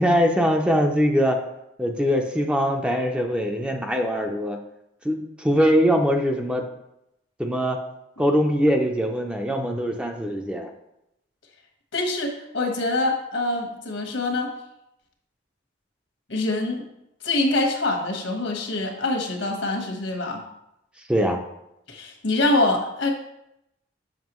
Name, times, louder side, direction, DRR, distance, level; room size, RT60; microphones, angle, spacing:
voice 1, 0.0-1.4 1.8-4.6 5.0-6.6 7.4-7.8 8.2-10.7 21.1-21.4, equal, 5° right, 3 dB, 0.5 m, -22 dB
voice 2, 11.9-14.5 16.3-16.8 17.2-20.4 21.9-23.1, left 2 dB, 80° left, 2 dB, 1.3 m, -25 dB
7.4 x 5.8 x 3.0 m, 0.85 s
head